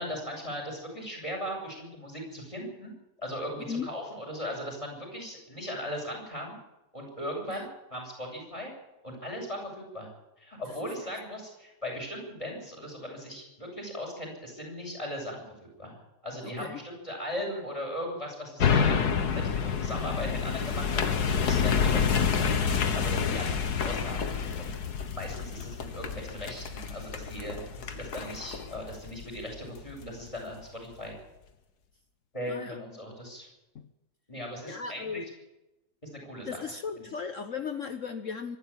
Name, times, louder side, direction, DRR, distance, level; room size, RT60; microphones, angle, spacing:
voice 1, 0.0-2.9 3.2-6.6 6.9-8.7 9.0-10.1 10.4-15.4 15.8-22.6 22.9-24.7 25.1-31.1 32.3-33.5 34.3-35.2 36.0-36.6 37.0-37.1, equal, 20° left, 1 dB, 7.9 m, -38 dB
voice 2, 16.4-16.8 23.2-23.4 32.5-32.8 33.7-33.9 34.7-35.2 36.5-38.6, left 6 dB, 55° left, 8 dB, 1.3 m, -36 dB
sound 1, 18.6-30.0 30.5-30.6, left 6 dB, 70° left, 2.0 m, -28 dB
24.5 x 12.0 x 8.9 m, 0.96 s
omnidirectional pair, 1.7 m